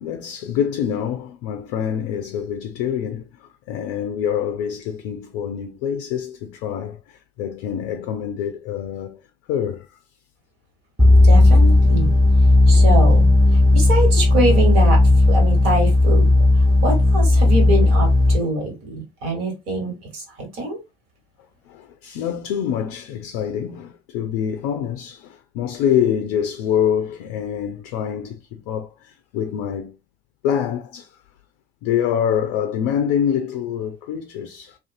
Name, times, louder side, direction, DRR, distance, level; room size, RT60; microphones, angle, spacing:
voice 1, 0.0-9.2 9.5-9.9 12.7-12.8 14.2-14.3 21.7-29.9 30.4-31.1 31.8-34.8, left 9 dB, 60° left, 0.5 m, -25 dB
sound 1, 11.0-18.4, left 2 dB, 15° right, 1.0 m, -14 dB
voice 2, 11.2-12.1 12.7-13.3 13.7-15.0 15.3-16.3 16.8-20.2 20.6-20.8, right 1 dB, 55° right, 1.5 m, -24 dB
2.5 x 2.3 x 2.5 m
figure-of-eight pair, 55°, 31 cm